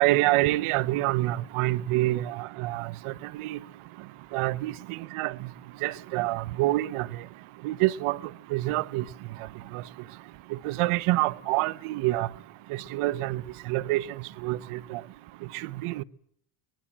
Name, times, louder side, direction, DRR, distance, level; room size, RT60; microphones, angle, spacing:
voice 1, 0.0-2.9 3.3-3.6 4.3-5.3 5.8-7.1 7.6-8.2 8.5-9.0 10.6-12.3 12.9-13.4 13.7-14.0 14.4-15.0 15.8-16.0, right 18 dB, 90° right, 1.1 m, -26 dB
23.5 x 21.5 x 8.7 m
cardioid pair, 125°, 49 cm